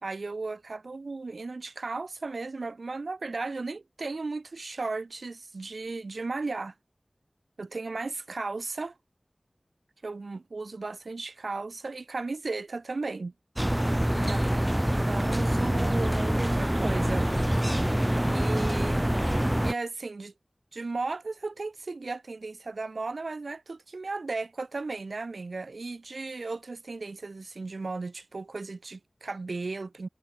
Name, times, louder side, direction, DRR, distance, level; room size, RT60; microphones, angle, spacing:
voice 1, 0.0-6.7 7.6-8.9 10.0-13.3 14.1-14.6 14.9-17.3 18.3-20.3 20.7-30.1, right 3 dB, 80° right, 4.8 m, -35 dB
sound 1, 13.6-19.7, equal, 10° right, 5.1 m, -25 dB
wide cardioid pair, 50°, 0 cm